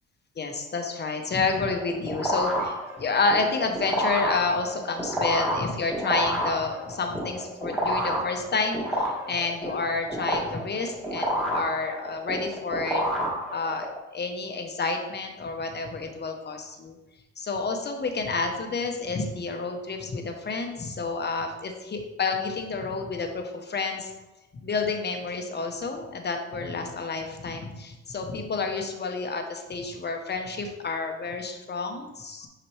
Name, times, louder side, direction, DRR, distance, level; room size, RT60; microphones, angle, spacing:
voice 1, 0.4-13.0 13.5-13.9 14.1-17.0 17.4-24.1 24.6-32.5, left 4 dB, 35° left, 4 dB, 1.0 m, -29 dB
sound 1, 1.6-14.0, equal, ahead, 2.2 m, -29 dB
6.0 x 5.0 x 3.2 m, 1.0 s
cardioid pair, 90°, 30 cm